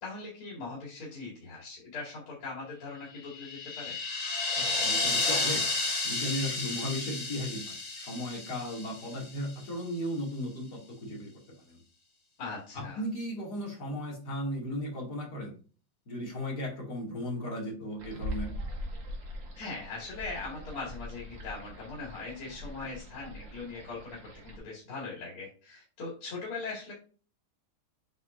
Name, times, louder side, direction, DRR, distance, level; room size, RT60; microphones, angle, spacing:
voice 1, 0.0-4.0 12.4-13.0 19.6-24.2 24.4-26.9, left 3 dB, 85° left, -5 dB, 3.0 m, -40 dB
sound 1, 3.2-9.4, left 3 dB, 30° left, 0.8 m, -32 dB
voice 2, 4.5-5.6 6.0-11.3 11.7-11.8 12.7-15.5 16.1-18.5, equal, 50° left, -2 dB, 2.9 m, -36 dB
sound 2, 18.0-24.6, equal, 60° right, 2.4 m, -42 dB
8.0 x 5.5 x 2.5 m, 0.38 s
omnidirectional pair, 2.3 m